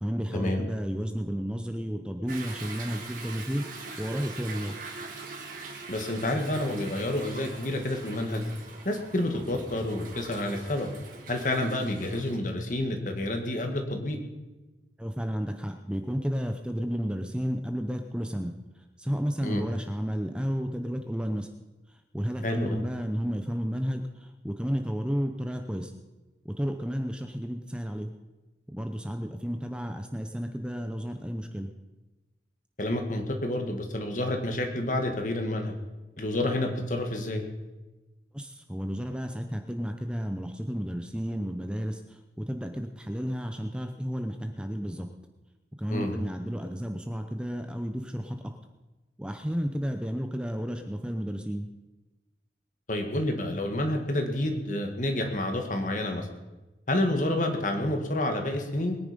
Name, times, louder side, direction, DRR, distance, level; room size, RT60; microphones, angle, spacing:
voice 1, 0.0-3.7 4.0-4.7 15.0-18.5 19.0-21.5 22.1-25.9 26.4-28.1 28.7-31.7 38.3-45.1 45.8-48.4 49.2-51.7, equal, 5° right, 5 dB, 0.7 m, -32 dB
Toilet flush / Drip / Trickle dribble, 2.3-12.4, right 3 dB, 50° right, 2.6 m, -42 dB
voice 2, 5.9-8.4 8.9-10.9 11.3-14.2 19.4-19.6 22.4-22.8 32.8-35.7 36.2-37.4 45.9-46.2 52.9-56.3 56.9-59.0, left 1 dB, 45° left, 4 dB, 2.1 m, -29 dB
21.5 x 10.0 x 5.3 m, 1.1 s
head